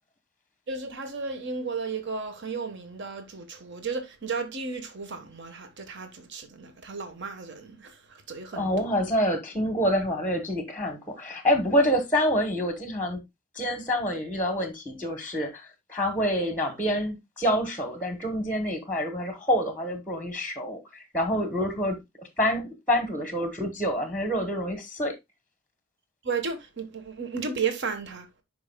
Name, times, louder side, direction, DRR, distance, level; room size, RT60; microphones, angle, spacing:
voice 1, 0.7-8.9 26.2-28.3, right 5 dB, 55° right, 1.2 m, -34 dB
voice 2, 8.5-13.2 13.5-25.1, equal, 10° left, 1.1 m, -27 dB
10.5 x 4.7 x 2.2 m
head